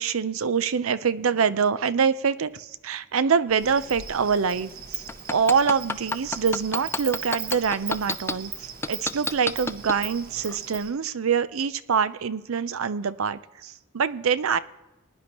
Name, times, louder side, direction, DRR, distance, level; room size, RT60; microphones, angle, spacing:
voice 1, 0.0-14.6, right 6 dB, 85° right, 15 dB, 0.6 m, -25 dB
Insect, 3.5-10.9, right 6 dB, 45° right, 1.5 m, -39 dB
sound 1, 5.1-8.3 8.8-10.0 10.5-10.6, left 3 dB, 10° left, 0.4 m, -28 dB
20.5 x 10.5 x 3.0 m, 1.0 s
head